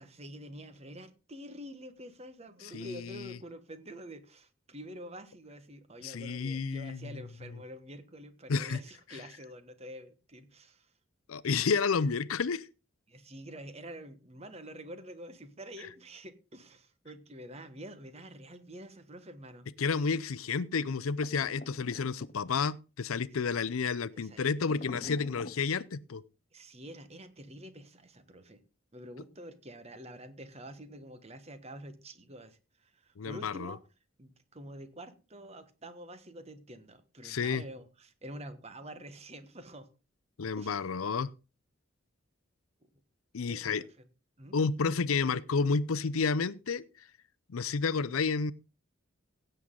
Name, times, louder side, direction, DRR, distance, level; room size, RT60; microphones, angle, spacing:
voice 1, 0.0-10.9 13.1-19.7 23.6-23.7 24.1-24.5 26.5-28.6 28.9-33.8 34.2-39.9 40.6-40.8 43.5-44.1 44.4-44.6, equal, 30° right, 1.3 m, -47 dB
voice 2, 2.7-3.4 6.0-7.2 8.5-8.8 11.3-12.7 19.8-26.2 33.2-33.7 37.2-37.6 40.4-41.3 43.3-43.8 44.5-46.8 47.5-48.5, left 5 dB, 85° left, 0.6 m, -31 dB
sound 1, 21.2-22.7 24.6-25.6, left 2 dB, 40° left, 0.6 m, -46 dB
16.5 x 7.9 x 3.8 m
head